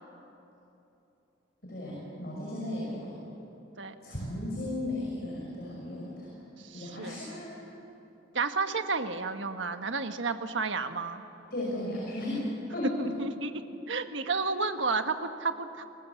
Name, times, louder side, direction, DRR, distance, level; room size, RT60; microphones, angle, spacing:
voice 1, 1.6-3.1 4.0-6.4 6.7-7.5 11.5-12.4 12.7-13.1, left 1 dB, 55° left, -5 dB, 6.3 m, -35 dB
voice 2, 6.6-7.2 8.3-11.2 13.0-15.9, right 4 dB, 75° right, 8 dB, 1.4 m, -32 dB
28.5 x 19.5 x 8.4 m, 2.9 s
head